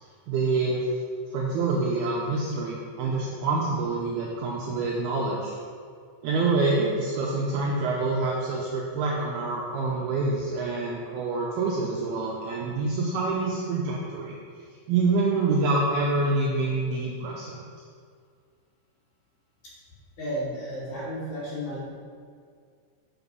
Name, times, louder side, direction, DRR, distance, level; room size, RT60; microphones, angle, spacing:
voice 1, 0.3-0.8 1.3-5.6 6.2-14.4 14.9-17.6, right 3 dB, 90° right, -3 dB, 2.2 m, -26 dB
voice 2, 20.2-21.9, equal, 50° left, -8 dB, 3.1 m, -33 dB
7.0 x 6.0 x 5.3 m, 2.1 s
omnidirectional pair, 5.3 m